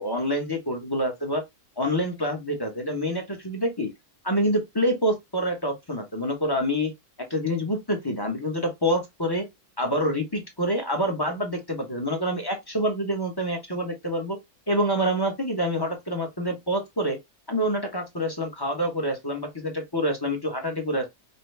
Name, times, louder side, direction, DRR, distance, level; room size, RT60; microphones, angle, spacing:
voice 1, 0.0-1.4 1.8-3.9 4.2-6.9 7.3-9.5 9.8-14.4 14.7-17.2 17.5-21.0, equal, 20° left, 0.8 m, -27 dB
5.6 x 2.2 x 3.3 m
omnidirectional pair, 1.6 m